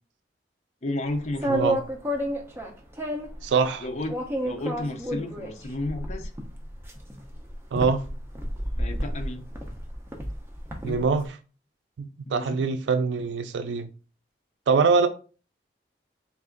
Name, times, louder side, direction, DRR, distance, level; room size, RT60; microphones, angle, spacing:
voice 1, 0.8-1.7 3.8-4.2 4.4-6.3 8.8-9.4 10.8-11.0 12.3-12.6, left 2 dB, 40° left, 0.5 m, -32 dB
sound 1, 1.3-3.4 4.1-11.1, equal, 15° right, 0.5 m, -30 dB
voice 2, 1.5-1.8 3.4-3.9 7.7-8.0 10.8-11.3 12.0-13.9 14.7-15.1, right 5 dB, 90° right, 0.4 m, -23 dB
3.3 x 2.4 x 3.7 m
head